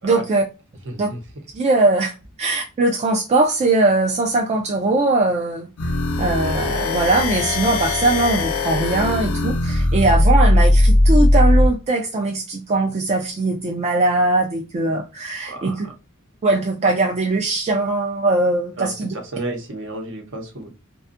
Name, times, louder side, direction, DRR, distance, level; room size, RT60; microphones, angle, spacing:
voice 1, 0.0-0.4 1.0-1.1 1.5-5.7 6.2-15.8 16.4-19.1, right 2 dB, 30° right, 0.3 m, -20 dB
voice 2, 0.8-1.2 15.5-15.9 18.8-20.7, right 2 dB, 60° right, 0.8 m, -32 dB
sound 1, 5.8-11.7, left 1 dB, 80° left, 0.6 m, -18 dB
2.6 x 2.2 x 2.4 m
head